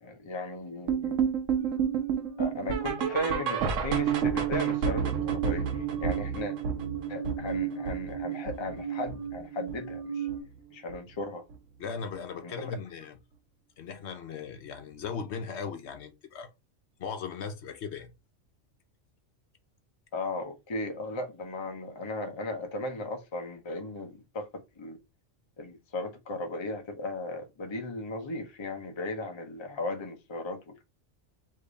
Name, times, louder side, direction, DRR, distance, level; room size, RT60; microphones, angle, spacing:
voice 1, 0.0-1.3 2.4-6.6 7.1-10.3 10.7-11.5 12.4-12.7 20.1-25.0 25.6-30.8, left 2 dB, 30° left, 0.7 m, -36 dB
sound 1, 0.9-10.0 10.3-10.6 10.9-11.0 11.5-11.6 12.1-12.2, right 7 dB, 85° right, 1.1 m, -30 dB
sound 2, 1.6-3.7 4.0-10.4, right 8 dB, 30° right, 1.3 m, -38 dB
voice 2, 11.8-13.2 13.8-16.5 17.0-18.1, left 6 dB, 65° left, 0.9 m, -38 dB
3.5 x 3.2 x 3.9 m
omnidirectional pair, 1.3 m